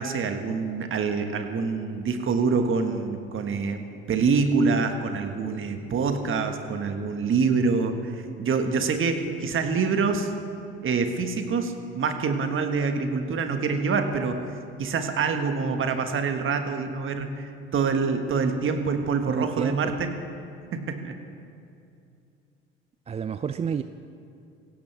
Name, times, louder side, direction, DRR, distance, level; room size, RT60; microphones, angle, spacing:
voice 1, 0.0-10.3 10.8-14.4 14.8-20.1 20.7-21.2, right 5 dB, 40° right, 6 dB, 1.6 m, -26 dB
voice 2, 19.3-19.9 23.1-23.8, right 7 dB, 20° right, 11 dB, 0.4 m, -29 dB
17.0 x 16.5 x 3.5 m, 2.5 s
hypercardioid pair, 65°, 31 cm